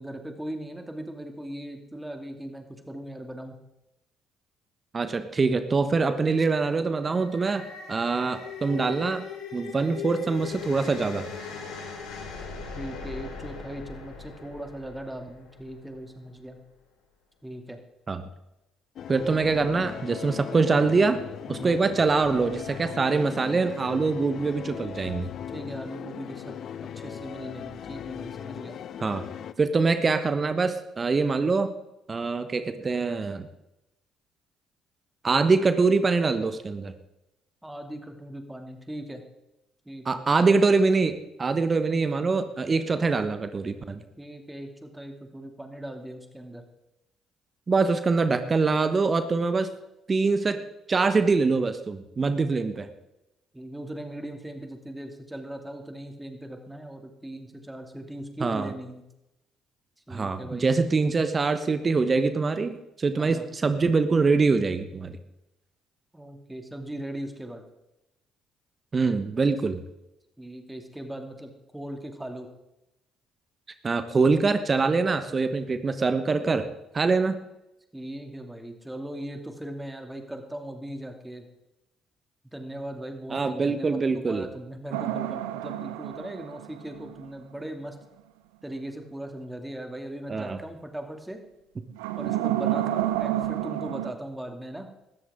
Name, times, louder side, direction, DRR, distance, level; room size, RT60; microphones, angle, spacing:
voice 1, 0.0-3.6 12.4-16.6 17.4-17.8 19.3-19.4 21.5-21.8 25.5-26.5 26.9-28.8 37.6-39.2 39.9-40.2 44.2-46.6 53.5-59.0 60.1-60.7 63.2-63.4 66.1-67.6 69.5-69.6 70.4-72.5 77.9-81.4 82.5-88.0 88.6-91.4 92.2-94.9, right 1 dB, 10° right, 5 dB, 2.6 m, -39 dB
voice 2, 4.9-9.2 9.5-11.3 18.1-18.2 19.1-21.2 21.5-25.3 29.0-29.2 29.6-31.7 32.1-33.5 35.2-36.9 40.0-44.0 47.7-49.7 50.1-50.6 50.9-52.9 58.4-58.7 60.1-65.1 68.9-69.8 73.8-76.7 76.9-77.4 83.3-84.5 90.3-90.6, right 4 dB, 35° right, 10 dB, 1.2 m, -24 dB
sound 1, 6.8-16.1, left 5 dB, 75° left, 3.9 m, -40 dB
sound 2, 19.0-29.5, left 9 dB, 55° left, 0.6 m, -38 dB
sound 3, 84.9-87.3 91.9-94.1, right 14 dB, 80° right, 0.7 m, -29 dB
19.0 x 14.0 x 3.7 m, 0.92 s
hypercardioid pair, 50°, 0 cm